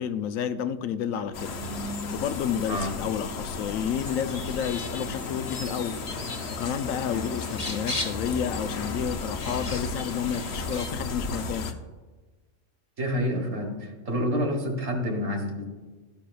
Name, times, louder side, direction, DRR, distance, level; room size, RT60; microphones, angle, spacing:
voice 1, 0.0-1.6 2.1-6.0 6.5-11.7, left 8 dB, 85° left, 10 dB, 1.0 m, -30 dB
sound 1, 1.3-11.7, left 4 dB, 60° left, 0.9 m, -34 dB
sound 2, 4.0-10.9, left 1 dB, 30° left, 1.1 m, -39 dB
voice 2, 13.0-15.7, equal, 65° right, 1 dB, 1.6 m, -28 dB
13.0 x 5.8 x 2.3 m, 1.3 s
omnidirectional pair, 1.4 m